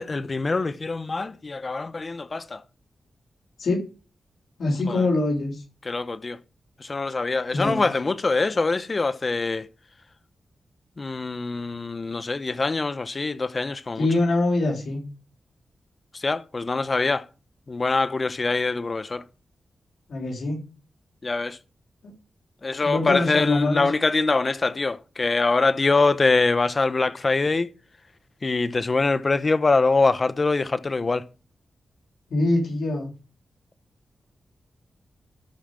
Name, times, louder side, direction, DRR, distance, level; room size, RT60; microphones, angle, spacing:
voice 1, 0.0-2.6 4.9-5.1 5.8-6.4 6.8-9.7 11.0-14.1 16.1-17.3 17.7-19.2 21.2-21.6 22.6-27.7 28.4-31.3, left 3 dB, 40° left, 1.1 m, -24 dB
voice 2, 4.6-5.6 7.5-7.9 14.0-15.0 20.1-20.6 22.8-23.9 32.3-33.1, left 2 dB, 80° left, 3.6 m, -24 dB
13.0 x 5.1 x 7.5 m
cardioid pair, 70°, 0 cm